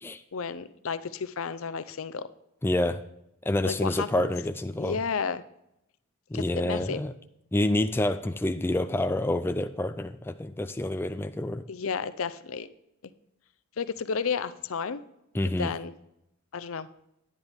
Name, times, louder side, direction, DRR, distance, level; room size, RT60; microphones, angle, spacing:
voice 1, 0.3-2.3 3.6-4.3 4.8-5.4 6.3-7.0 11.7-12.7 13.8-15.0 15.6-15.9 16.5-16.9, left 5 dB, 75° left, 14 dB, 0.6 m, -32 dB
voice 2, 2.6-3.0 3.5-5.0 6.3-7.1 7.5-11.6 15.3-15.7, left 1 dB, 10° left, 9 dB, 0.3 m, -28 dB
10.5 x 9.6 x 3.5 m, 0.81 s
head